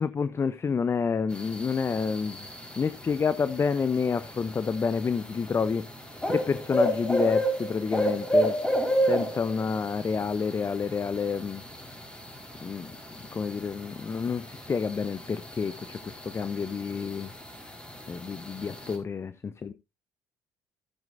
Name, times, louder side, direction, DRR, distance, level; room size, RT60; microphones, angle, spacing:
voice 1, 0.0-2.5 2.8-5.9 6.3-8.5 9.1-11.6 12.6-17.3 18.1-19.7, left 5 dB, 35° left, 0.7 m, -29 dB
sound 1, 1.3-19.0, equal, 15° left, 4.3 m, -32 dB
14.0 x 9.0 x 2.6 m
hypercardioid pair, 60°, 8 cm